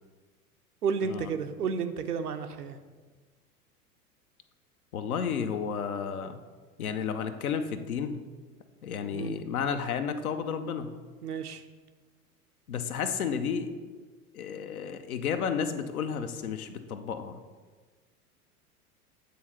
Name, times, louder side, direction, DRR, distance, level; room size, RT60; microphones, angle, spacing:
voice 1, 0.8-2.8 9.1-9.4 11.2-11.6, right 6 dB, 80° right, 7 dB, 0.7 m, -32 dB
voice 2, 4.9-6.4 6.8-8.2 8.8-10.9 12.7-13.7 14.3-17.4, left 7 dB, 65° left, 8 dB, 0.8 m, -32 dB
8.6 x 3.8 x 5.7 m, 1.4 s
figure-of-eight pair, 90°, 46 cm